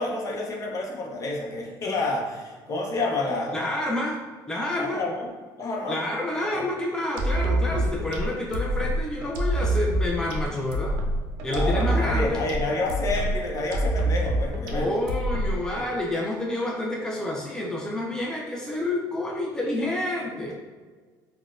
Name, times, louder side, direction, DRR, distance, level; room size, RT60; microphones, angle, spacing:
voice 1, 0.0-3.9 4.7-5.3 5.6-6.0 6.5-6.7 11.5-15.0, left 2 dB, 40° left, -1 dB, 0.7 m, -29 dB
voice 2, 3.5-4.2 4.5-5.0 5.9-11.0 11.4-12.4 14.7-20.5, left 1 dB, 10° left, -2 dB, 0.4 m, -28 dB
sound 1, 7.2-15.8, right 1 dB, 75° right, 0.5 m, -26 dB
3.9 x 2.2 x 2.4 m, 1.4 s
supercardioid pair, 90°, 8 cm